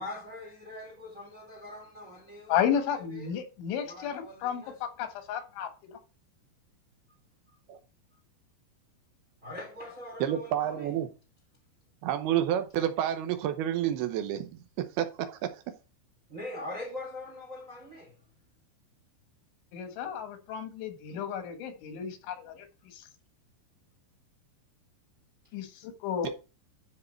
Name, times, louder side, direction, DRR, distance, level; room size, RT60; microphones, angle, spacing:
voice 1, 0.0-2.8 3.1-3.3 3.8-4.8 9.4-10.9 16.3-18.1, left 1 dB, 40° right, 1.2 m, -42 dB
voice 2, 2.5-6.0 19.7-22.7 22.9-23.1 25.5-26.3, left 8 dB, 90° left, 3.9 m, -33 dB
voice 3, 10.2-11.1 12.0-15.6 26.2-26.3, right 11 dB, 75° right, 2.4 m, -30 dB
13.0 x 4.7 x 4.4 m
omnidirectional pair, 5.2 m